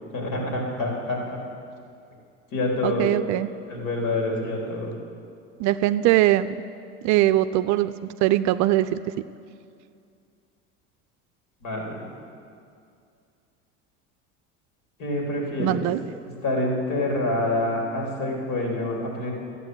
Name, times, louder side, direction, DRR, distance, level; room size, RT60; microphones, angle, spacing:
voice 1, 0.1-1.4 2.5-3.2 3.7-4.9 11.6-12.0 15.0-15.8 16.4-19.3, left 1 dB, 60° left, -1 dB, 4.0 m, -27 dB
voice 2, 2.8-3.5 5.6-6.5 7.0-7.9 8.2-9.0 15.6-16.0, right 15 dB, 50° right, 13 dB, 0.5 m, -21 dB
13.5 x 8.4 x 8.0 m, 2.4 s
hypercardioid pair, 70°, 37 cm